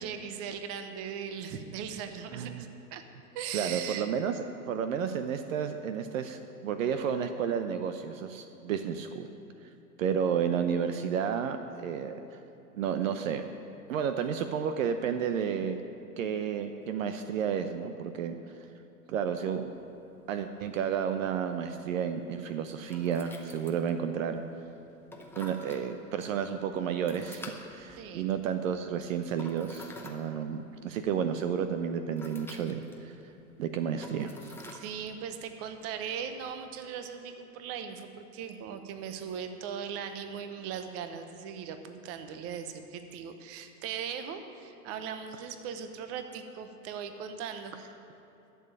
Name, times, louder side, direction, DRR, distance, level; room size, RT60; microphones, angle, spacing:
voice 1, 0.0-3.0 3.3-4.1 28.0-28.3 34.4-47.8, right 7 dB, 30° right, 8 dB, 0.9 m, -39 dB
voice 2, 2.3-2.6 3.5-4.4 4.7-9.3 10.0-12.4 12.7-13.4 13.9-15.8 16.2-18.3 19.1-19.7 20.3-24.4 25.4-33.1 33.6-34.3, right 7 dB, 55° right, 8 dB, 0.8 m, -31 dB
sound 1, 19.4-36.9, left 2 dB, 5° left, 0.8 m, -51 dB
12.0 x 7.0 x 8.8 m, 2.9 s
hypercardioid pair, 115°, 47 cm